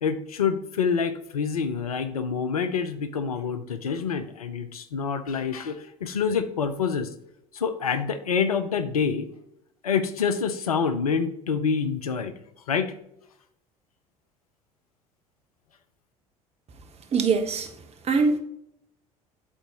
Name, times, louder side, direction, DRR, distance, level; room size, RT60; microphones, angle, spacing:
voice 1, 0.0-7.1 7.5-9.3 9.8-12.3 12.7-12.9, left 6 dB, 80° left, 10 dB, 0.6 m, -27 dB
voice 2, 17.1-17.7 18.0-18.4, right 4 dB, 35° right, 5 dB, 1.2 m, -22 dB
11.0 x 4.1 x 2.9 m, 0.78 s
figure-of-eight pair, 60°, 19 cm